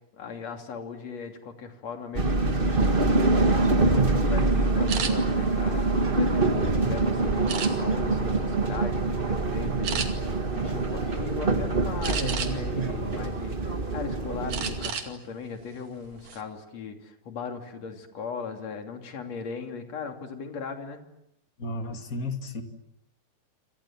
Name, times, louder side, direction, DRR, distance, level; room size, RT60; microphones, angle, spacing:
voice 1, 0.1-21.0, left 5 dB, 45° left, 4 dB, 3.8 m, -38 dB
sound 1, 2.1-14.9, right 3 dB, 80° right, 0.4 m, -25 dB
sound 2, 4.9-5.1 5.8-6.7 7.5-8.1 8.6-8.8 9.2-9.3 9.8-10.1 12.0-12.7 13.2-14.0 14.5-15.1 15.4-15.6 16.0-16.4, right 7 dB, 55° right, 3.6 m, -32 dB
voice 2, 21.6-22.6, left 2 dB, 25° left, 5 dB, 2.2 m, -33 dB
28.0 x 28.0 x 7.4 m, 0.83 s
omnidirectional pair, 4.4 m